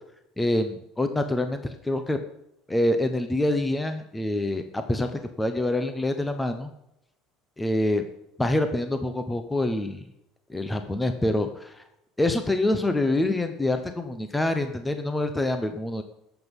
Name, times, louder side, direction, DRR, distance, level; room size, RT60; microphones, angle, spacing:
voice 1, 0.4-2.2 2.7-6.7 7.6-8.0 8.4-10.0 10.5-11.8 12.2-16.0, left 1 dB, 10° left, 7 dB, 0.9 m, -26 dB
20.5 x 8.2 x 5.4 m, 0.83 s
cardioid pair, 150°, 0 cm